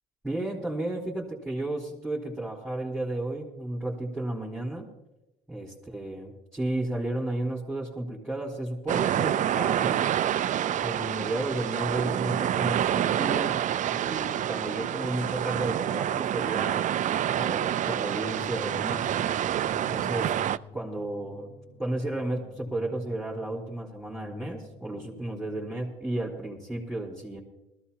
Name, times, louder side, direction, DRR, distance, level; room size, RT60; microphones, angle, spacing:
voice 1, 0.2-4.9 5.5-10.1 10.8-13.6 13.8-16.8 17.3-19.1 19.7-20.4 20.7-21.5 21.8-27.4, right 1 dB, ahead, -5 dB, 4.0 m, -33 dB
sound 1, 8.9-20.6, right 10 dB, 45° right, 0.5 m, -27 dB
sound 2, 18.2-25.8, left 3 dB, 85° left, 2.6 m, -47 dB
20.5 x 15.0 x 2.9 m, 0.94 s
cardioid pair, 100°, 17 cm